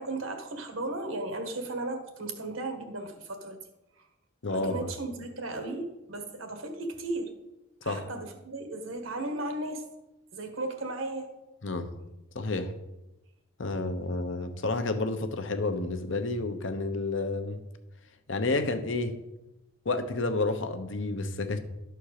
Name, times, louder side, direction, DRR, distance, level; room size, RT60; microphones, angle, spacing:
voice 1, 0.0-3.6 4.0-4.1 4.5-7.3 7.8-9.8 10.3-11.3, right 2 dB, 80° right, 5 dB, 1.5 m, -35 dB
voice 2, 4.4-4.9 7.8-8.0 11.6-11.9 12.3-12.7 13.6-17.6 18.3-19.2 19.8-21.6, left 2 dB, 65° left, 8 dB, 0.9 m, -30 dB
12.0 x 4.5 x 6.6 m, 0.97 s
head